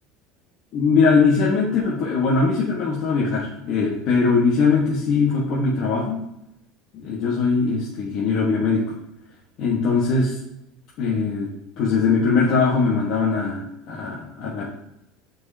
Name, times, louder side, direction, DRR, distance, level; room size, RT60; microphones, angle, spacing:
voice 1, 0.7-6.2 6.9-8.8 9.6-10.4 11.0-11.5 11.8-14.6, left 4 dB, 55° left, -5 dB, 1.3 m, -21 dB
8.4 x 4.6 x 2.8 m, 0.85 s
supercardioid pair, 115°, 0 cm